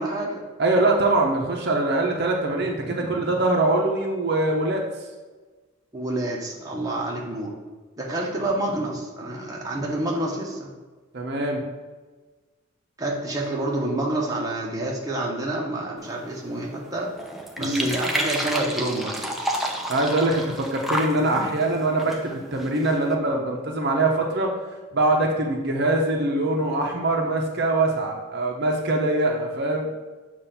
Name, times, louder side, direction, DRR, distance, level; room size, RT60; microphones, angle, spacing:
voice 1, 0.0-0.4 2.8-3.2 5.9-7.5 8.0-10.7 13.0-17.1 17.6-19.3 21.3-21.5, right 1 dB, 15° right, -3 dB, 0.9 m, -28 dB
voice 2, 0.6-4.8 11.1-11.6 17.6-17.9 19.9-24.5 24.9-30.0, right 2 dB, 50° right, 1 dB, 0.7 m, -23 dB
sound 1, 16.0-23.1, equal, ahead, 0.4 m, -31 dB
7.0 x 2.5 x 5.6 m, 1.3 s
head